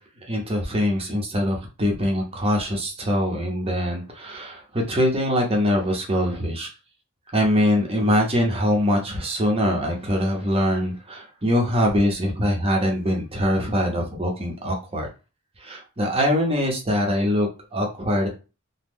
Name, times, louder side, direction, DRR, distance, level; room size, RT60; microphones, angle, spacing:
voice 1, 0.3-6.7 7.3-15.1 15.6-18.3, equal, 25° right, 1 dB, 0.8 m, -23 dB
3.0 x 2.1 x 3.5 m, 0.31 s
head